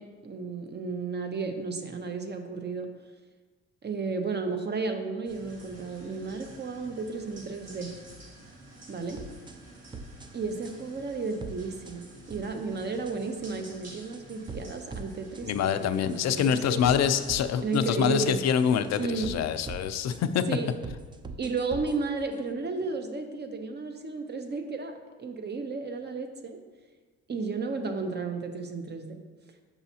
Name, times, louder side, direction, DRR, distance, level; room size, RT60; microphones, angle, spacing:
voice 1, 0.0-2.9 3.8-7.9 8.9-9.2 10.3-16.9 17.6-18.4 19.0-19.3 20.5-20.7 21.4-26.6 27.3-29.2, right 4 dB, 35° right, 6 dB, 0.7 m, -33 dB
sound 1, 5.2-19.0, right 1 dB, 55° right, 1.8 m, -50 dB
sound 2, 9.2-9.6 9.9-10.3 10.6-10.7 11.4-11.6 11.9-12.5 12.8-13.1 13.5-14.7 14.9-15.1 15.3-15.7 16.1-17.5 17.7-17.8 18.3-19.4 19.7-19.8 20.1-20.2 20.8-21.9, right 3 dB, 15° right, 0.4 m, -41 dB
voice 2, 15.4-20.4, left 8 dB, 60° left, 10 dB, 0.5 m, -25 dB
7.0 x 5.6 x 2.8 m, 1.4 s
cardioid pair, 90°, 30 cm